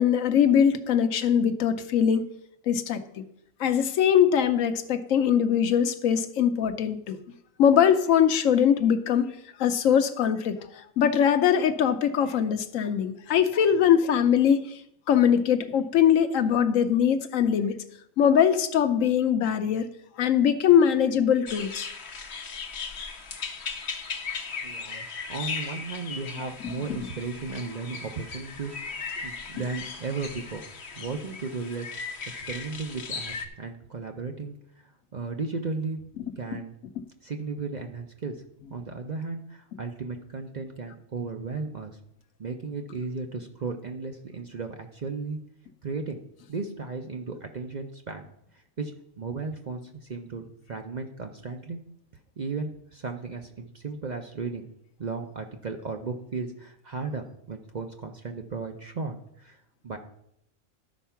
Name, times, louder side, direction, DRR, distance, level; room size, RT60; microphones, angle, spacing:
voice 1, 0.0-2.3 2.7-3.0 3.6-7.2 7.6-9.3 9.6-14.8 15.1-17.8 18.2-19.9 20.2-21.9 26.6-26.8, left 8 dB, 80° left, 1.1 m, -22 dB
sound 1, 21.5-33.5, left 5 dB, 55° left, 1.1 m, -37 dB
voice 2, 24.6-30.6 30.9-31.9 32.5-34.6 35.1-36.0 36.4-36.7 37.2-38.4 38.7-42.0 42.4-45.4 45.8-46.2 46.5-48.3 48.8-48.9 49.2-51.8 52.4-54.7 55.0-59.6 59.8-60.0, right 4 dB, 45° right, 0.6 m, -35 dB
12.5 x 4.6 x 5.7 m
omnidirectional pair, 1.4 m